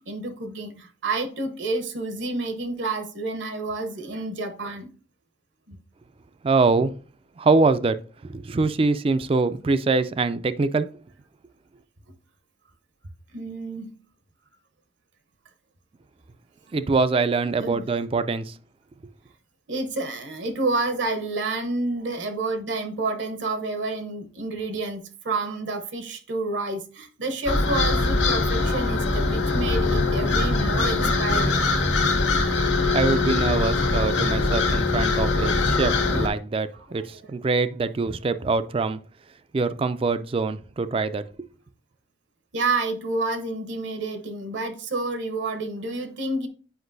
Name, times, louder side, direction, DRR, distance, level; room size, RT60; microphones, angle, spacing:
voice 1, 0.0-4.9 5.7-5.8 13.3-13.9 17.5-17.9 19.7-31.6 36.9-37.2 42.5-46.5, right 2 dB, 70° right, 0.9 m, -29 dB
voice 2, 6.4-6.9 7.4-8.0 8.2-10.9 16.7-18.6 32.9-39.0 39.5-41.3, right 3 dB, 30° right, 0.3 m, -24 dB
sound 1, 27.5-36.3, left 3 dB, 70° left, 1.2 m, -22 dB
7.9 x 5.2 x 2.6 m
head